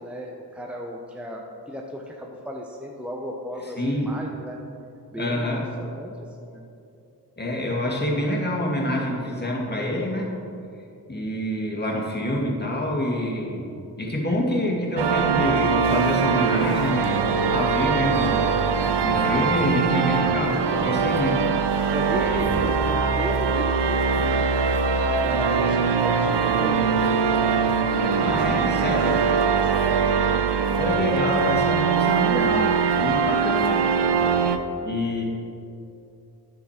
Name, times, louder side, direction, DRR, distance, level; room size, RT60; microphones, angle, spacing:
voice 1, 0.0-4.6 5.1-6.1 6.4-6.7 21.9-24.5 25.0-27.0 29.6-31.1, left 1 dB, 5° right, 0 dB, 0.9 m, -35 dB
voice 2, 3.8-4.1 5.2-5.6 7.4-10.3 11.1-13.7 14.0-18.5 19.0-21.4 22.1-22.4 28.0-29.3 30.8-33.8 34.2-34.3 34.8-35.2, left 1 dB, 25° left, -2 dB, 2.1 m, -26 dB
sound 1, 15.0-34.6, right 5 dB, 75° right, 0.6 m, -22 dB
9.6 x 6.7 x 4.4 m, 2.7 s
cardioid pair, 55°, 41 cm